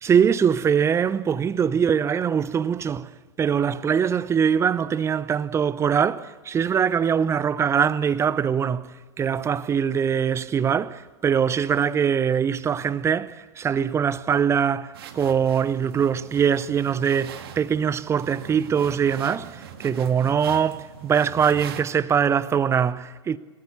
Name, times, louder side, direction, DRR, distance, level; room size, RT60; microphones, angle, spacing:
voice 1, 0.0-3.1 3.4-8.9 9.2-23.4, right 7 dB, 20° right, 0.7 m, -22 dB
sound 1, 14.9-21.8, right 8 dB, 55° right, 1.9 m, -41 dB
28.0 x 17.0 x 7.1 m
figure-of-eight pair, 90°, 15 cm